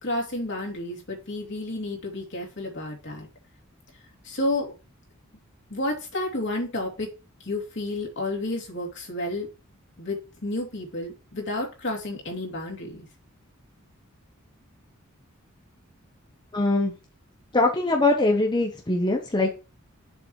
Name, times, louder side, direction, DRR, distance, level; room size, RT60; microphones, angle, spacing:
voice 1, 0.0-3.3 4.2-4.7 5.7-7.1 7.4-9.5 10.0-13.1, left 1 dB, 55° left, 0 dB, 2.8 m, -31 dB
voice 2, 16.5-16.9 17.5-19.5, left 2 dB, 20° left, 1 dB, 1.0 m, -22 dB
7.7 x 7.2 x 3.2 m, 0.31 s
head